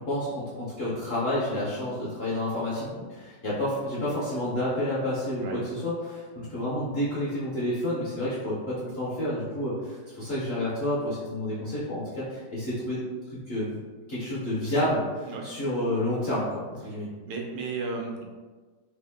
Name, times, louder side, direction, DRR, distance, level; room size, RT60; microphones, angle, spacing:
voice 1, 0.1-13.0 13.3-13.8 14.1-17.1, left 1 dB, 50° left, -9 dB, 0.8 m, -30 dB
voice 2, 17.2-18.2, right 3 dB, 85° right, 1 dB, 1.3 m, -34 dB
3.4 x 2.1 x 3.4 m, 1.4 s
omnidirectional pair, 2.0 m